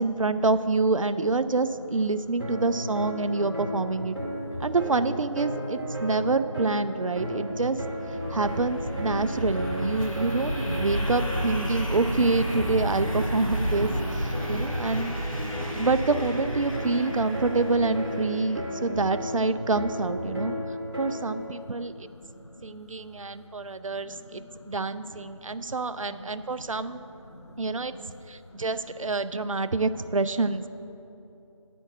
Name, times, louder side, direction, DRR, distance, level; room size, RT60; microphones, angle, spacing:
voice 1, 0.0-4.2 4.6-7.8 8.3-15.1 15.8-20.5 21.0-22.1 22.6-27.0 27.6-28.0 28.3-30.7, right 3 dB, 75° right, 12 dB, 0.4 m, -27 dB
sound 1, 2.4-21.5, equal, 40° right, 2.0 m, -34 dB
sound 2, 7.1-18.8, equal, 80° left, 2.0 m, -32 dB
voice 2, 7.3-7.6 8.1-8.4 14.3-15.2 20.9-21.3 21.8-22.7 23.9-28.2 28.5-28.7 29.4-29.7, left 1 dB, 55° left, 3 dB, 0.8 m, -48 dB
sound 3, 9.5-18.1, right 1 dB, 90° right, 0.9 m, -46 dB
10.0 x 4.4 x 7.3 m, 3.0 s
figure-of-eight pair, 175°, 17 cm